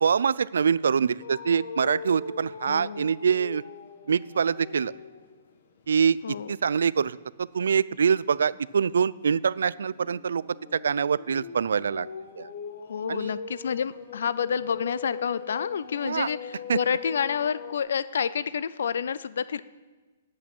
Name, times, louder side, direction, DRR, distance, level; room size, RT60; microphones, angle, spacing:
voice 1, 0.0-3.6 4.1-4.9 5.9-6.2 6.5-10.4 10.7-12.1 12.4-12.5 13.1-13.3 16.0-16.3 16.7-16.8, right 6 dB, 90° right, 20 dB, 0.3 m, -24 dB
sound 1, 1.2-5.3 5.8-6.1 8.5-17.8, left 6 dB, 55° left, 1.3 m, -41 dB
voice 2, 2.7-3.1 6.2-6.5 12.9-19.6, left 7 dB, 70° left, 17 dB, 0.4 m, -29 dB
8.6 x 8.3 x 9.0 m, 1.3 s
hypercardioid pair, 170°, 0 cm